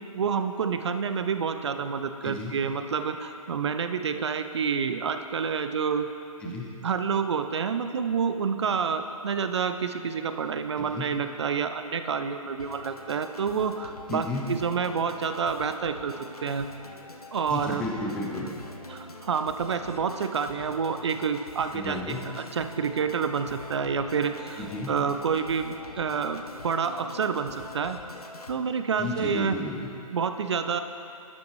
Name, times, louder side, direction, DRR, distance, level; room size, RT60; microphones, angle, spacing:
voice 1, 0.1-6.1 6.5-6.6 6.8-16.1 16.4-16.7 17.3-17.8 18.9-24.6 24.9-28.0 28.5-29.6 30.1-30.8, right 6 dB, 50° right, 8 dB, 0.4 m, -28 dB
voice 2, 2.2-2.5 6.4-6.7 10.8-11.1 14.1-14.4 17.5-18.5 21.7-22.2 24.6-24.9 29.0-29.9, left 2 dB, 5° left, -3 dB, 0.4 m, -33 dB
Organ, 12.6-28.6, left 2 dB, 85° left, 0.6 m, -45 dB
11.5 x 7.0 x 3.1 m, 2.6 s
figure-of-eight pair, 135°, 19 cm